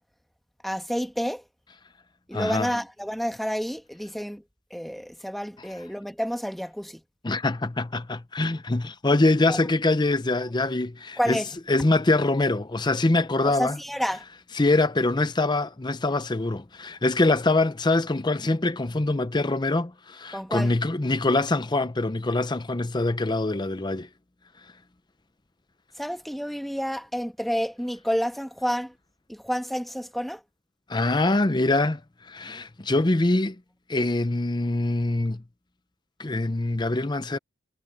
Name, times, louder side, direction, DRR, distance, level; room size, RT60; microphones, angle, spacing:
voice 1, 0.6-1.4 2.3-4.4 4.7-7.0 9.5-9.6 11.2-11.5 13.4-14.2 20.3-20.7 26.0-28.9 29.3-30.4, equal, ahead, 1.2 m, -29 dB
voice 2, 2.3-2.7 7.2-11.4 11.7-13.8 14.5-24.1 30.9-32.0 32.3-33.6 33.9-35.4 36.2-37.4, left 2 dB, 20° left, 0.6 m, -24 dB
head